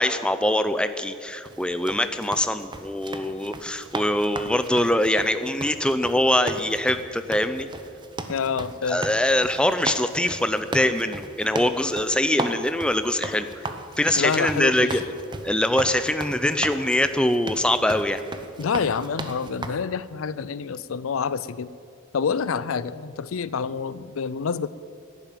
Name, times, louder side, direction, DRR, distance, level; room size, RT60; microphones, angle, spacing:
voice 1, 0.0-7.7 8.9-13.7 14.0-15.0 15.4-18.2, left 1 dB, 5° left, 10 dB, 0.5 m, -23 dB
sound 1, 1.4-19.7, right 2 dB, 20° right, 0.8 m, -36 dB
voice 2, 8.3-9.0 14.2-14.9 18.6-21.7 22.1-24.7, left 6 dB, 85° left, 17 dB, 0.5 m, -27 dB
11.5 x 10.5 x 9.1 m, 2.3 s
head